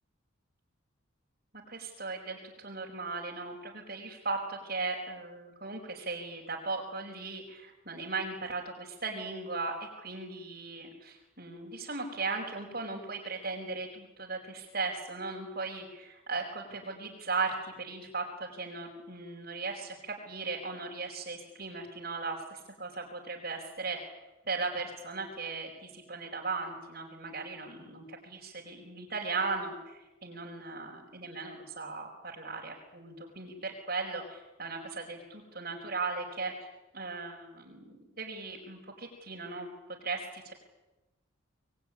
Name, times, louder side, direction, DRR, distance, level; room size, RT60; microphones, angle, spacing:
voice 1, 1.7-24.0 24.4-36.5 36.9-39.7 40.0-40.5, right 3 dB, 45° right, -3 dB, 4.8 m, -37 dB
25.5 x 22.0 x 10.0 m, 1.0 s
head